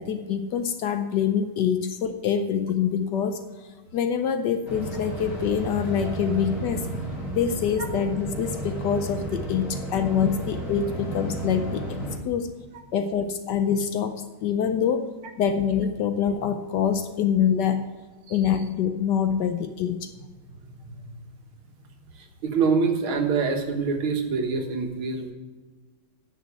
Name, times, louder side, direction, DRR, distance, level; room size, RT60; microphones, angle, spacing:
voice 1, 0.0-3.4 3.9-6.9 7.3-11.8 12.2-12.5 12.9-15.1 15.4-17.9 18.3-20.1, left 8 dB, 70° left, 9 dB, 1.1 m, -25 dB
sound 1, 4.7-12.2, right 2 dB, 40° left, 2.5 m, -33 dB
voice 2, 22.2-25.3, right 5 dB, 85° right, 4 dB, 2.2 m, -25 dB
9.6 x 6.1 x 8.0 m, 1.3 s
omnidirectional pair, 2.3 m